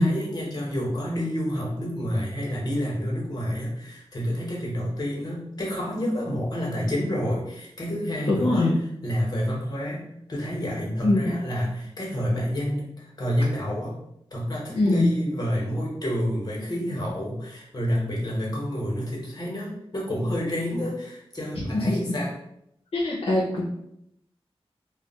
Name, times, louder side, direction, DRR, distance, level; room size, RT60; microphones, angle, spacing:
voice 1, 0.0-8.7 9.0-10.0 10.3-13.9 14.3-22.3, equal, 40° left, -4 dB, 1.0 m, -29 dB
voice 2, 8.3-8.7 11.0-11.3 14.8-15.1 21.5-22.2 22.9-23.6, left 2 dB, 70° left, -5 dB, 0.6 m, -22 dB
2.3 x 2.1 x 3.9 m, 0.76 s
wide cardioid pair, 90°, 10 cm